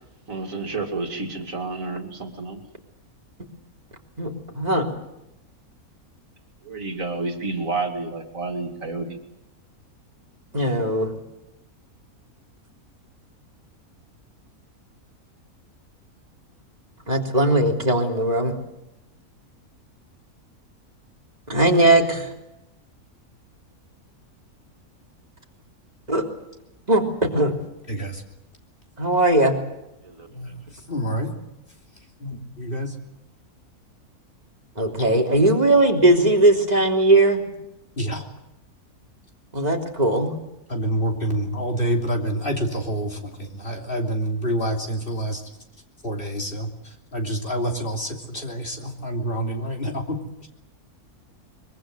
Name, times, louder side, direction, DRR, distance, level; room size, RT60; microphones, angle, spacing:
voice 1, 0.3-2.6 6.6-9.2 30.0-30.3, right 3 dB, 60° right, 4 dB, 2.9 m, -30 dB
voice 2, 4.2-4.9 10.5-11.1 17.1-18.6 21.5-22.3 26.1-26.2 26.9-27.6 29.0-29.5 34.8-37.5 39.5-40.3, right 2 dB, 25° right, 1 dB, 3.5 m, -19 dB
voice 3, 27.9-28.2 30.3-31.3 32.2-32.9 38.0-38.2 40.7-45.4 46.0-50.5, right 1 dB, 35° left, 2 dB, 3.4 m, -27 dB
24.0 x 23.0 x 7.9 m, 0.89 s
omnidirectional pair, 1.6 m